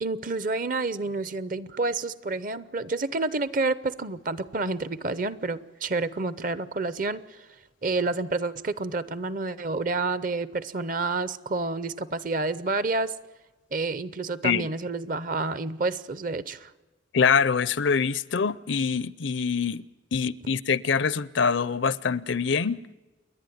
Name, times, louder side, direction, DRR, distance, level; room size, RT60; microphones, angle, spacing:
voice 1, 0.0-7.5 7.8-13.1 13.7-16.7, right 3 dB, 45° right, 0.7 m, -29 dB
voice 2, 17.1-19.8 20.1-22.8, left 6 dB, 70° left, 0.6 m, -24 dB
28.5 x 11.0 x 9.3 m
head